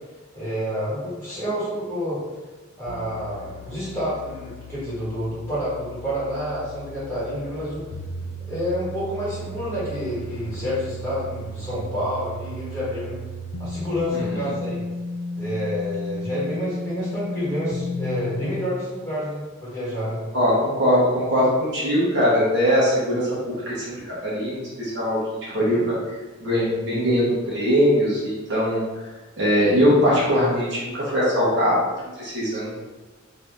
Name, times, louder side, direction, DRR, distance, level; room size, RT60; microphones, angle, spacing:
voice 1, 0.3-2.2 2.8-7.8 8.5-13.2 13.6-14.8 15.3-20.2, equal, 10° left, -11 dB, 1.4 m, -29 dB
sound 1, 2.9-18.7, left 1 dB, 65° left, 0.3 m, -34 dB
voice 2, 20.3-23.9 24.2-25.9 26.4-28.8 29.4-31.8 32.2-32.8, equal, 55° right, -7 dB, 1.0 m, -21 dB
2.7 x 2.6 x 3.4 m, 1.2 s
head